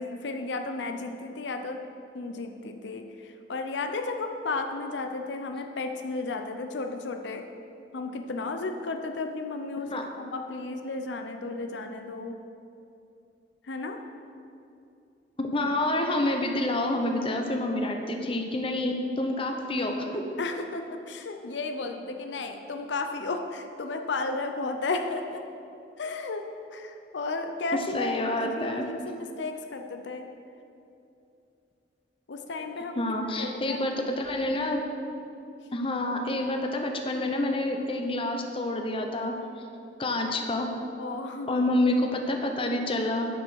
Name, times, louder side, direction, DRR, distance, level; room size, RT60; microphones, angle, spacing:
voice 1, 0.0-1.8 2.1-7.4 7.9-12.4 13.6-14.0 20.4-25.4 26.0-26.4 26.7-30.3 32.3-33.0 33.4-33.9 41.0-41.6, left 3 dB, 80° left, 5 dB, 0.6 m, -33 dB
voice 2, 15.4-20.2 27.9-28.9 33.0-34.8 35.7-39.3 40.0-40.7 41.5-43.3, left 1 dB, 30° left, 3 dB, 0.8 m, -28 dB
10.5 x 5.0 x 6.3 m, 2.7 s
head